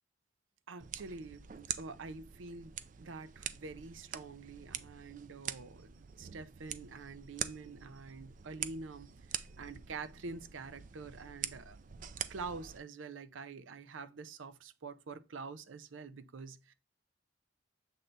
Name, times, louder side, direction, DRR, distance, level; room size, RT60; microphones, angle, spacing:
voice 1, 0.7-11.8 12.3-16.7, right 4 dB, 85° right, 0.6 m, -46 dB
sound 1, 0.8-12.8, right 9 dB, 40° right, 0.3 m, -45 dB
7.4 x 3.3 x 3.9 m
head